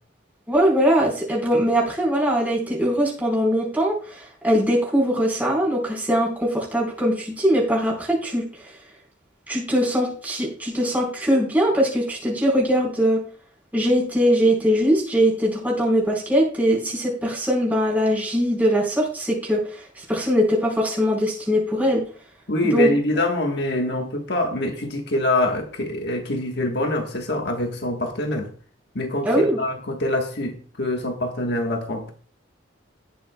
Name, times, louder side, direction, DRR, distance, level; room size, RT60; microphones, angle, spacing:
voice 1, 0.5-8.8 9.5-13.2 13.7-22.0 22.6-22.9 29.2-29.6, equal, 10° right, -3 dB, 4.4 m, -21 dB
voice 2, 22.5-28.5 28.9-32.1, left 1 dB, 60° left, 3 dB, 1.4 m, -25 dB
18.5 x 7.1 x 2.3 m, 0.42 s
head